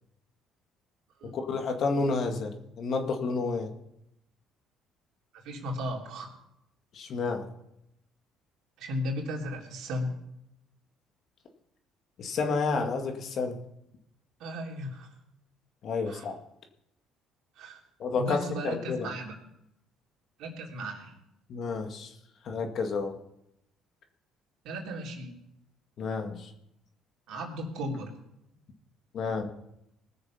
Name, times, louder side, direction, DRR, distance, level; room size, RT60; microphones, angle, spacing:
voice 1, 1.3-3.7 6.9-7.5 12.2-13.6 15.8-16.4 18.0-18.4 18.6-19.1 21.5-22.1 22.4-23.1 26.0-26.5 29.1-29.5, left 4 dB, 55° left, 4 dB, 2.1 m, -30 dB
voice 2, 5.4-6.3 8.8-10.1 14.4-15.1 16.0-16.3 17.5-17.8 18.1-19.4 20.4-21.1 24.6-25.3 27.3-28.1, equal, 70° right, 0 dB, 3.2 m, -35 dB
19.5 x 6.8 x 5.8 m, 0.80 s
supercardioid pair, 80°, 0 cm